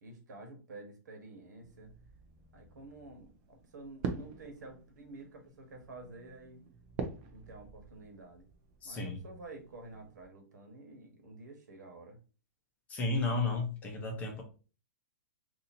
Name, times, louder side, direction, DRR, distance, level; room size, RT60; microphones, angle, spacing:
voice 1, 0.0-1.9 2.5-6.6 7.3-8.5 8.8-12.2, right 2 dB, 85° right, 3 dB, 1.3 m, -50 dB
sound 1, 1.6-10.2, right 5 dB, 35° right, 0.6 m, -45 dB
voice 2, 8.8-9.2 12.9-14.4, left 3 dB, 15° left, 2 dB, 0.7 m, -33 dB
2.7 x 2.7 x 4.1 m, 0.35 s
hypercardioid pair, 155°, 9 cm